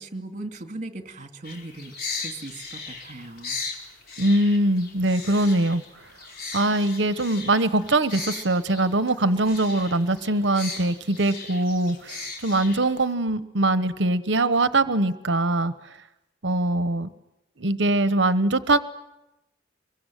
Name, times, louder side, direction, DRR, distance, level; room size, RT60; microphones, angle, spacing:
voice 1, 0.0-3.6, right 2 dB, 40° right, 6 dB, 2.6 m, -38 dB
sound 1, 1.4-13.1, left 4 dB, 55° left, 4.9 m, -38 dB
voice 2, 4.2-5.8 6.5-15.7 16.4-17.1 17.6-18.8, right 2 dB, 70° right, 13 dB, 1.2 m, -22 dB
24.5 x 23.0 x 9.3 m, 0.91 s
head